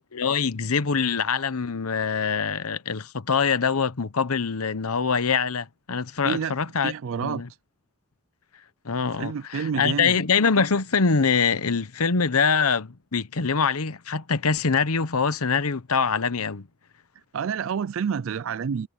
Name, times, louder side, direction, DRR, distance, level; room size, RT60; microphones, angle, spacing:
voice 1, 0.1-6.9 7.2-7.5 8.8-16.7, left 5 dB, 90° left, 1.0 m, -24 dB
voice 2, 6.2-6.6 6.8-7.4 9.2-10.1 17.3-18.9, right 6 dB, 65° right, 0.4 m, -28 dB
head